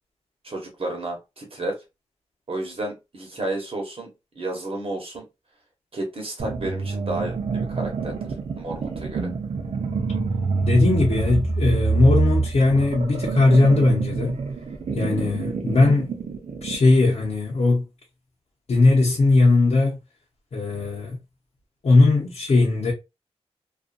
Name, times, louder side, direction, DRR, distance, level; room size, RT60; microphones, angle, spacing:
voice 1, 0.4-1.8 2.5-5.2 5.9-8.2 8.6-9.3, right 2 dB, 55° right, 1.1 m, -31 dB
sound 1, 6.4-16.9, right 4 dB, 85° right, 0.7 m, -26 dB
voice 2, 10.6-14.4 14.9-16.1 16.6-17.9 18.7-20.0 20.5-21.2 21.8-22.9, left 2 dB, 70° left, 0.8 m, -19 dB
2.5 x 2.5 x 2.4 m
wide cardioid pair, 95°, 11 cm